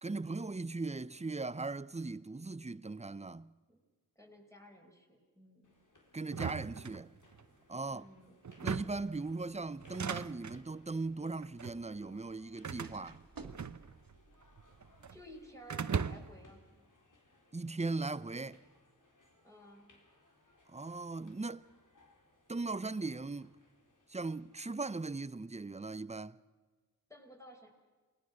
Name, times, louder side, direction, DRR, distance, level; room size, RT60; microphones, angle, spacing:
voice 1, 0.0-3.5 6.1-7.1 7.7-8.1 8.6-13.2 17.5-18.6 20.7-21.7 22.5-23.5 24.1-26.4, right 3 dB, 20° right, 0.6 m, -39 dB
voice 2, 4.2-5.7 7.9-8.4 15.1-16.9 19.4-19.9 27.1-27.7, equal, 10° left, 5.5 m, -55 dB
sound 1, 5.6-24.6, left 2 dB, 60° left, 3.8 m, -67 dB
sound 2, 6.3-7.4 8.4-9.1 9.8-10.6 11.4-11.8 12.6-14.2 14.4-15.2 15.7-16.5, right 6 dB, 55° right, 0.8 m, -39 dB
sound 3, 10.7-16.0, right 3 dB, 75° right, 1.8 m, -59 dB
28.0 x 20.5 x 6.4 m
wide cardioid pair, 60°, 34 cm